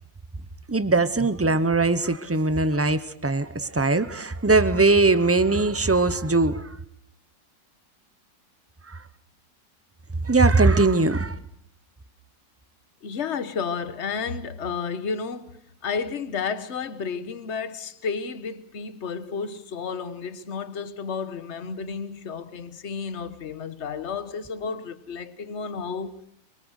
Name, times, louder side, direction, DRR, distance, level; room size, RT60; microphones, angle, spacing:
voice 1, 0.7-6.8 8.9-9.0 10.2-11.4, right 3 dB, 20° right, 0.3 m, -21 dB
voice 2, 13.0-26.1, left 5 dB, 40° left, 1.4 m, -32 dB
24.0 x 23.5 x 6.5 m
omnidirectional pair, 2.0 m